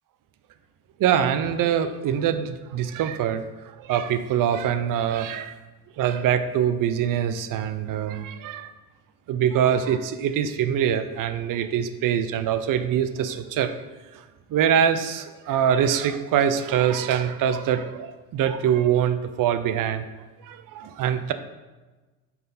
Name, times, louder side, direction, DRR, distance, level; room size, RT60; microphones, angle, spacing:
voice 1, 1.0-3.4 3.8-5.5 6.0-8.7 9.3-13.8 14.1-14.2 14.5-20.0 20.4-21.3, right 9 dB, 55° right, 10 dB, 0.7 m, -24 dB
7.0 x 4.9 x 4.1 m, 1.2 s
supercardioid pair, 70°, 39 cm